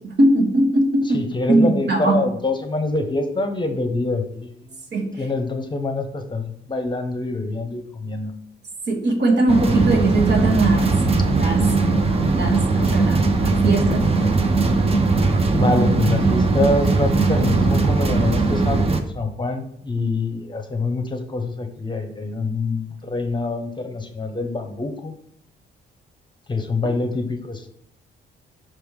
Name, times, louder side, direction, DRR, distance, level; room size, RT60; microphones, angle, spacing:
voice 1, 0.0-1.2 1.5-2.2 4.9-5.1 8.9-10.9 11.4-11.6 12.3-14.1, right 2 dB, 60° right, 1 dB, 1.5 m, -20 dB
voice 2, 1.1-4.8 5.2-8.3 15.5-25.1 26.5-27.7, left 2 dB, 25° left, 5 dB, 0.8 m, -25 dB
sound 1, 9.5-19.0, right 3 dB, 30° right, 0.8 m, -19 dB
6.0 x 3.4 x 4.8 m, 0.70 s
cardioid pair, 90°, 20 cm